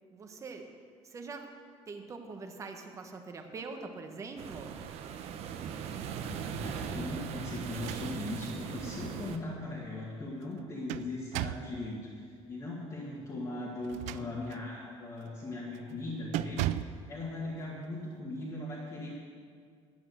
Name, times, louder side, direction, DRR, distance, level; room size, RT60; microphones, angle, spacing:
voice 1, 0.1-0.7 1.0-1.5 1.9-4.7, right 4 dB, 25° right, 4 dB, 1.2 m, -43 dB
sound 1, 4.4-9.4, right 7 dB, 60° right, 0.9 m, -39 dB
voice 2, 6.2-19.1, left 2 dB, 30° left, -6 dB, 1.8 m, -39 dB
sound 2, 7.7-8.4 8.9-9.0 10.4-11.8 13.8-14.7 15.2-15.4 15.7-16.0 16.3-17.0, right 13 dB, 80° right, 0.4 m, -36 dB
10.5 x 8.6 x 7.8 m, 2.1 s
cardioid pair, 160°, 12 cm